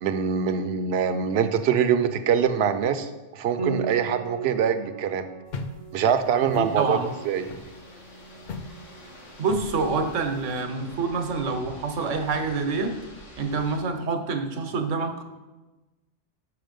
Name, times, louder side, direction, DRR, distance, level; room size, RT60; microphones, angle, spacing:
voice 1, 0.0-5.3 5.9-7.0 7.3-7.4, right 7 dB, 65° right, 9 dB, 0.8 m, -24 dB
Piano, 3.6-12.9, right 4 dB, 35° right, 0.6 m, -39 dB
sound 1, 5.5-10.6, left 3 dB, 55° left, 0.6 m, -40 dB
voice 2, 6.5-7.1 9.4-12.9 13.4-15.2, right 4 dB, 85° right, 6 dB, 1.2 m, -27 dB
sound 2, 6.6-13.8, left 1 dB, 75° left, 1.8 m, -47 dB
6.9 x 5.7 x 5.2 m, 1.1 s
omnidirectional pair, 1.2 m